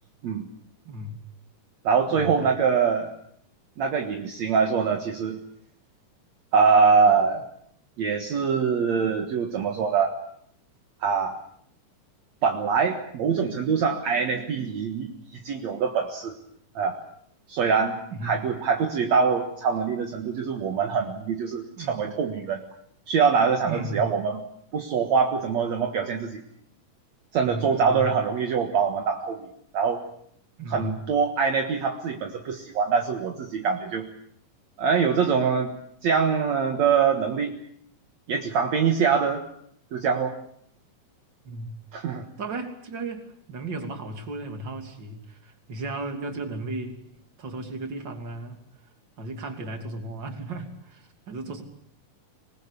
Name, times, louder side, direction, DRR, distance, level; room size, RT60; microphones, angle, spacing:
voice 1, 0.9-1.2 2.1-2.6 18.1-18.4 21.8-22.0 23.6-24.0 27.4-28.0 30.6-31.0 41.4-41.7 42.4-47.0 47.4-48.6 49.2-51.6, right 2 dB, 35° right, 5 dB, 3.4 m, -35 dB
voice 2, 1.8-3.1 3.8-5.4 6.5-7.4 8.0-10.2 11.0-11.4 12.4-16.4 16.8-17.0 17.5-18.0 18.2-22.6 23.1-24.4 24.7-26.4 27.3-29.5 29.7-30.0 30.7-34.1 34.8-35.7 36.0-37.5 38.3-39.4 39.9-40.3 41.9-42.3, right 6 dB, 60° right, 4 dB, 2.7 m, -24 dB
25.5 x 20.0 x 8.5 m, 0.68 s
omnidirectional pair, 3.7 m